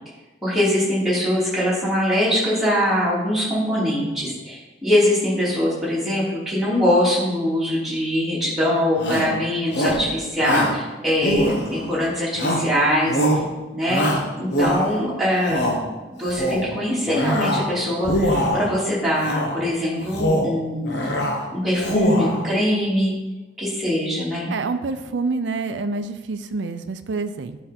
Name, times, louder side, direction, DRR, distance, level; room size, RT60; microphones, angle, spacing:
voice 1, 0.4-13.4 13.7-14.0 14.4-15.7 16.2-21.1 21.5-23.1 23.6-24.5, left 1 dB, ahead, -8 dB, 3.1 m, -22 dB
Shout, 9.0-9.3 9.7-10.1 10.4-10.8 11.2-11.9 12.4-12.7 13.1-13.5 13.9-15.0 15.4-15.8 16.2-16.7 17.1-17.7 18.0-18.7 19.2-19.6 20.0-20.5 20.9-21.4 21.7-22.4, equal, 65° left, 1.4 m, -23 dB
voice 2, 24.5-27.6, right 3 dB, 85° right, 9 dB, 0.5 m, -27 dB
11.0 x 5.0 x 4.3 m, 1.1 s
head